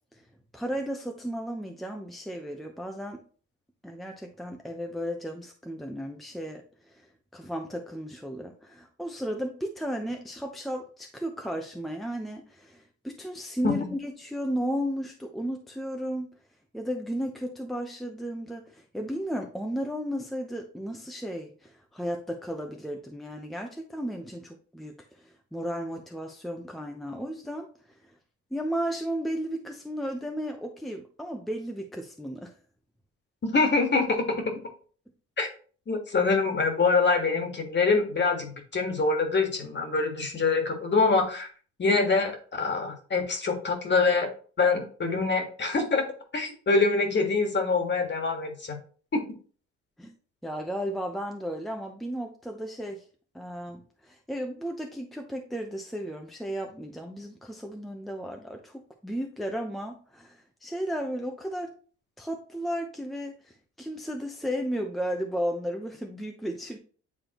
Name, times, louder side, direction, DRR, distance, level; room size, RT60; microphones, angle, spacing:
voice 1, 0.5-3.2 3.8-7.1 7.3-16.3 16.7-27.7 28.0-28.1 28.5-32.5 50.0-50.1 50.4-53.0 53.3-61.7 62.2-66.8, equal, ahead, 3 dB, 0.8 m, -34 dB
voice 2, 33.4-34.2 35.4-35.5 35.9-41.5 41.8-44.3 44.6-46.0 46.3-48.8 49.1-49.2, left 4 dB, 35° left, 4 dB, 1.8 m, -25 dB
9.0 x 3.6 x 3.0 m, 0.42 s
cardioid pair, 90°, 30 cm